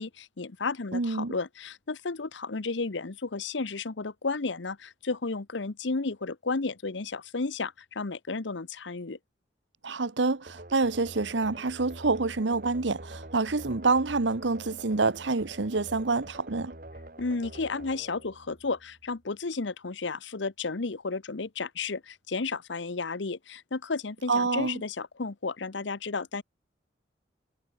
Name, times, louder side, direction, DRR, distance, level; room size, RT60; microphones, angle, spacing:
voice 1, 0.0-9.2 17.2-26.4, left 3 dB, 80° left, 0.9 m, -33 dB
voice 2, 0.9-1.3 9.8-16.7 24.3-24.8, right 3 dB, 80° right, 1.0 m, -27 dB
sound 1, 10.5-19.1, right 1 dB, 50° right, 2.4 m, -46 dB
head